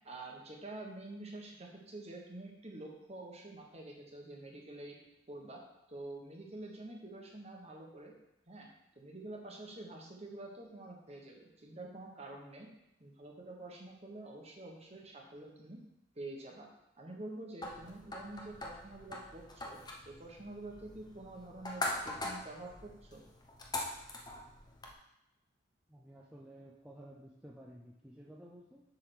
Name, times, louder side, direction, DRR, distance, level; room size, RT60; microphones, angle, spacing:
voice 1, 0.0-5.0 5.3-5.6 5.9-8.1 8.5-8.7 8.9-12.7 13.0-15.8 16.1-16.7 17.0-19.8 20.0-23.2, right 2 dB, 30° right, 0 dB, 1.4 m, -47 dB
sound 1, 17.6-24.9, left 2 dB, 20° left, 0.9 m, -42 dB
voice 2, 25.9-28.8, right 1 dB, 5° right, -4 dB, 0.6 m, -53 dB
7.9 x 3.8 x 6.3 m, 0.90 s
head